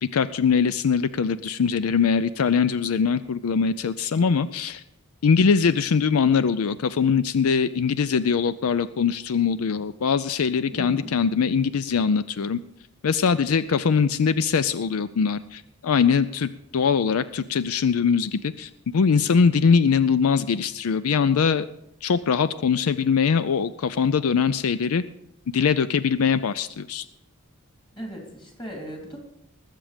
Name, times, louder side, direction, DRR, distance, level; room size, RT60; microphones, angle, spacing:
voice 1, 0.0-4.8 5.2-12.6 13.0-21.7 22.0-25.0 25.5-27.0, left 6 dB, 80° left, 15 dB, 0.5 m, -22 dB
voice 2, 10.7-11.1 28.0-29.2, equal, 20° left, 1 dB, 3.0 m, -37 dB
20.0 x 7.6 x 5.1 m, 0.78 s
head